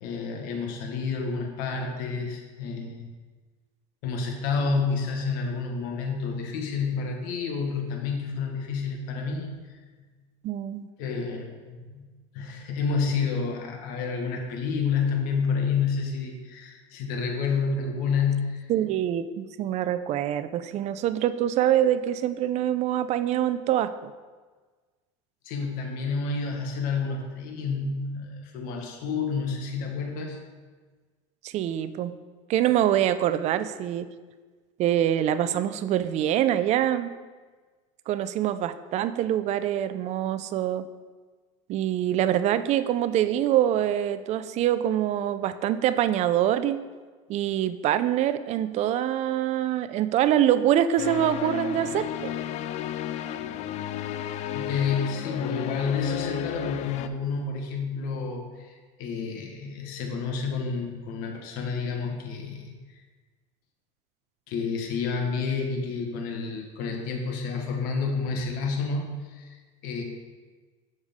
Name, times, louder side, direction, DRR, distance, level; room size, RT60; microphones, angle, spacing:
voice 1, 0.0-3.1 4.0-9.5 11.0-12.1 12.3-18.7 25.4-30.4 54.5-63.0 64.5-70.0, left 5 dB, 65° left, 2 dB, 1.4 m, -29 dB
voice 2, 10.4-10.9 18.7-24.1 31.4-32.1 32.5-34.1 34.8-37.1 38.1-40.8 41.7-46.8 47.3-52.3, right 11 dB, 45° right, 12 dB, 0.5 m, -25 dB
sound 1, 51.0-57.1, left 11 dB, 45° left, 0.4 m, -33 dB
7.2 x 6.5 x 3.6 m, 1.4 s
supercardioid pair, 110°, 16 cm